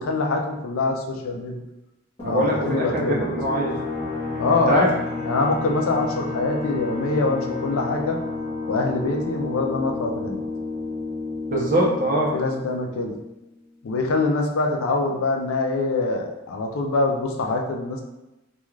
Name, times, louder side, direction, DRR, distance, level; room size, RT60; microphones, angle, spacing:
voice 1, 0.0-1.6 2.2-3.3 4.4-4.9 5.2-8.2 8.7-10.4 12.3-13.1 13.8-18.0, left 3 dB, 80° left, 2 dB, 0.4 m, -24 dB
sound 1, 2.2-13.5, left 3 dB, 30° left, 1.1 m, -31 dB
voice 2, 2.2-3.8 4.7-4.9 11.5-12.3, right 1 dB, 40° right, -3 dB, 0.6 m, -22 dB
Bowed string instrument, 3.8-9.2, left 2 dB, 10° right, 1.3 m, -39 dB
2.4 x 2.3 x 3.1 m, 0.98 s
head